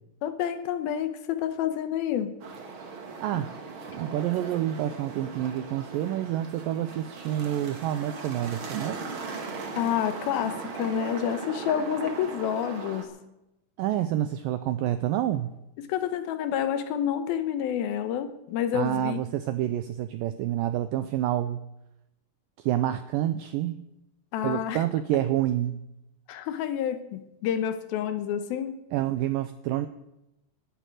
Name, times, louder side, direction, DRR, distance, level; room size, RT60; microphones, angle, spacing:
voice 1, 0.2-2.4 3.3-3.4 9.8-13.2 15.8-19.2 24.3-24.8 26.3-28.8, left 9 dB, 75° left, 9 dB, 2.6 m, -29 dB
sound 1, 2.4-13.0, right 4 dB, 45° right, 1.7 m, -38 dB
voice 2, 3.2-3.5 3.9-9.0 13.8-15.5 18.7-21.6 22.6-23.8 24.4-25.8 28.9-29.9, right 12 dB, 90° right, 11 dB, 2.0 m, -28 dB
12.0 x 10.5 x 9.2 m, 0.89 s
omnidirectional pair, 4.7 m